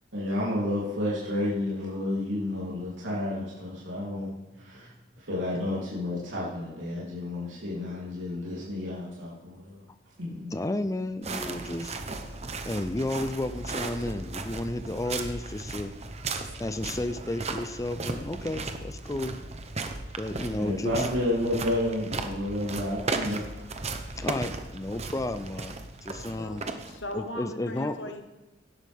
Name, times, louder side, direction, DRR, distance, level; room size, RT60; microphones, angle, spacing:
voice 1, 0.1-4.9 5.2-9.8 10.2-10.5 20.6-23.4, left 1 dB, 80° right, -7 dB, 3.3 m, -31 dB
voice 2, 10.5-12.0 12.7-15.9 16.6-19.4 20.2-21.1 24.2-25.8 26.0-26.6 27.1-28.0, left 1 dB, 15° left, 10 dB, 0.5 m, -32 dB
sound 1, 11.2-27.3, right 3 dB, 35° right, 0.9 m, -36 dB
voice 3, 26.2-28.2, left 1 dB, 70° left, 5 dB, 1.3 m, -39 dB
16.5 x 12.0 x 3.6 m, 1.1 s
head